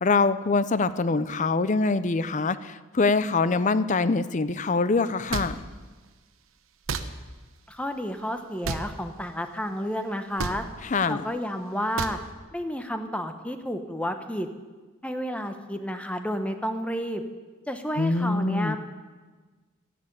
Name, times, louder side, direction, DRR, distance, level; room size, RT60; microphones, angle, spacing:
voice 1, 0.0-5.6 10.8-11.2 18.0-18.8, left 3 dB, 35° left, 14 dB, 0.5 m, -24 dB
sound 1, 5.3-5.5 6.9-7.0 8.6-8.8 10.4-10.6 12.0-12.2, right 4 dB, 80° right, 0.9 m, -29 dB
voice 2, 7.7-10.6 11.1-12.2 12.5-14.5 15.0-17.2 17.7-18.8, equal, 5° left, 7 dB, 0.9 m, -31 dB
12.5 x 10.5 x 8.6 m, 1.3 s
head